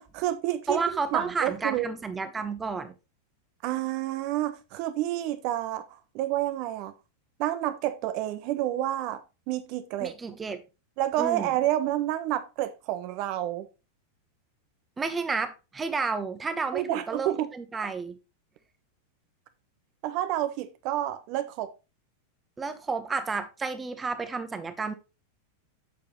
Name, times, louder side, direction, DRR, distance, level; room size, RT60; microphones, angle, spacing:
voice 1, 0.0-0.8 1.1-1.9 3.6-5.8 6.1-6.9 7.4-9.2 9.5-10.1 11.0-13.6 16.7-17.5 20.0-21.7, right 13 dB, 45° right, 1.1 m, -29 dB
voice 2, 0.7-2.9 10.0-10.6 11.2-11.5 15.0-18.2 22.6-24.9, right 4 dB, 15° right, 1.2 m, -31 dB
8.4 x 6.9 x 3.2 m
figure-of-eight pair, 90°, 0 cm